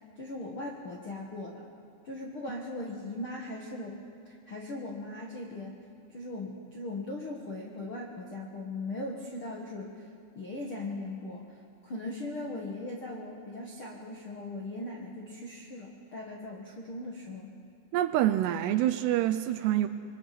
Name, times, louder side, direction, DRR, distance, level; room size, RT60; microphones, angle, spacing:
voice 1, 0.2-1.6 2.0-4.0 4.2-5.8 6.1-10.1 10.3-11.5 11.8-17.5, left 2 dB, 60° left, 1.4 m, -39 dB
voice 2, 17.9-19.9, right 13 dB, 80° right, 2.6 m, -26 dB
26.5 x 23.0 x 6.0 m
omnidirectional pair, 5.2 m